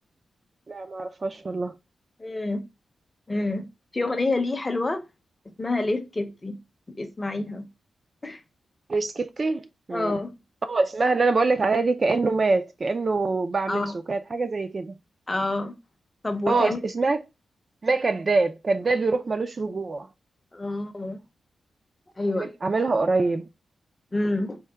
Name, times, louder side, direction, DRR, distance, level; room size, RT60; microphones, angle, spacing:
voice 1, 0.7-1.7 8.9-9.6 9.9-10.2 10.7-14.9 16.5-17.2 17.8-20.1 22.3-23.4, right 3 dB, 35° right, 0.3 m, -24 dB
voice 2, 2.2-2.6 3.3-3.7 3.9-5.0 5.6-6.6 6.9-7.7 8.2-8.4 9.9-10.3 13.7-13.9 15.3-15.7 16.2-16.8 20.5-21.2 22.2-22.5 24.1-24.6, left 2 dB, 20° left, 0.6 m, -27 dB
4.4 x 2.1 x 3.3 m
wide cardioid pair, 140°, 0 cm